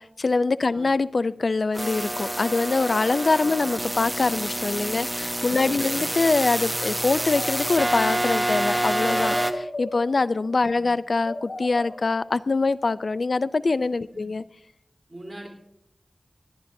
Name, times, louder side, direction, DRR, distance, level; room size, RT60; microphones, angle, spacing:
voice 1, 0.0-14.4, left 3 dB, 65° left, 16 dB, 0.4 m, -24 dB
sound 1, 1.7-9.5, right 1 dB, 15° right, 1.0 m, -27 dB
voice 2, 5.6-6.1 10.7-10.9 14.1-14.2 15.1-15.5, right 1 dB, 35° right, 0 dB, 3.4 m, -41 dB
sound 2, 7.1-8.3 8.8-10.5 11.1-12.4 13.7-13.9, left 2 dB, 90° left, 2.4 m, -36 dB
23.5 x 11.0 x 2.6 m, 0.77 s
wide cardioid pair, 60°, 0 cm